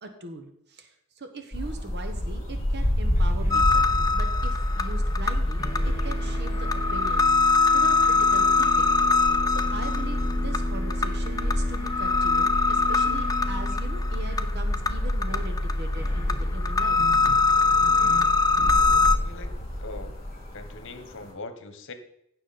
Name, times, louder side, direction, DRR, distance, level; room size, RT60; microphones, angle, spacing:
voice 1, 0.0-17.0, right 2 dB, 50° right, 7 dB, 1.1 m, -40 dB
sound 1, 1.5-21.3, left 1 dB, 30° left, 3.4 m, -32 dB
sound 2, 3.1-5.3 5.6-19.6, left 1 dB, 15° right, 2.2 m, -39 dB
sound 3, 3.5-19.2, left 3 dB, 15° left, 0.6 m, -23 dB
voice 2, 19.8-20.2 20.5-21.9, left 3 dB, 60° left, 9 dB, 1.2 m, -41 dB
16.0 x 6.2 x 4.2 m, 0.76 s
head